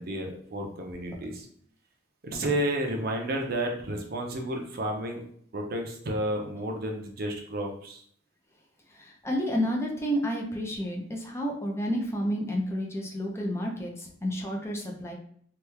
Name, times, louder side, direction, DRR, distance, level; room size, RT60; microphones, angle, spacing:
voice 1, 0.0-1.5 2.2-5.2 5.5-8.0, right 1 dB, 55° right, 2 dB, 0.6 m, -31 dB
voice 2, 9.0-15.1, equal, 15° left, 0 dB, 0.5 m, -30 dB
3.0 x 2.3 x 3.3 m, 0.62 s
head